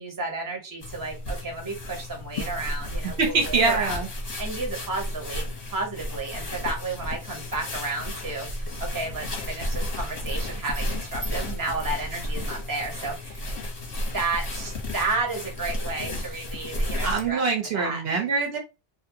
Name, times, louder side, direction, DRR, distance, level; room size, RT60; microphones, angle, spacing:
voice 1, 0.0-4.0 4.4-5.4 5.7-13.5 14.1-17.4 17.7-18.2, right 3 dB, 20° right, 1 dB, 0.7 m, -32 dB
sound 1, 0.8-17.3, left 1 dB, 40° left, 0.8 m, -33 dB
voice 2, 3.2-4.1 17.0-18.6, right 4 dB, 65° right, 2 dB, 0.9 m, -24 dB
2.6 x 2.2 x 2.6 m, 0.27 s
omnidirectional pair, 1.2 m